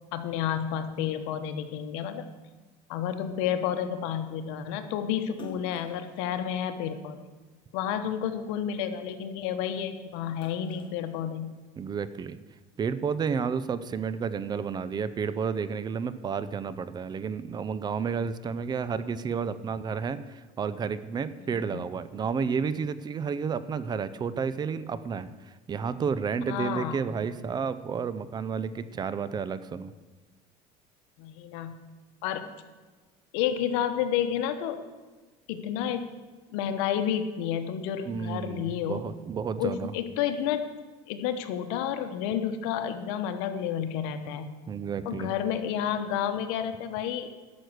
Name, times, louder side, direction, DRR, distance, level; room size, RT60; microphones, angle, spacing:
voice 1, 0.1-2.2 2.9-7.2 7.7-11.5 21.4-21.8 26.5-27.0 31.2-31.8 32.2-32.5 33.3-34.8 35.5-36.1 36.5-39.0 39.6-40.7 41.1-44.5 45.0-47.3, left 9 dB, 85° left, 9 dB, 1.1 m, -30 dB
Splash splatter, 5.3-7.8 8.3-9.8 10.1-11.8, left 5 dB, 35° left, 1.4 m, -50 dB
voice 2, 11.8-12.4 12.8-25.3 25.7-29.9 38.1-39.9 44.7-45.3, right 6 dB, 30° right, 15 dB, 0.6 m, -31 dB
11.5 x 6.3 x 7.9 m, 1.3 s
cardioid pair, 125°, 15 cm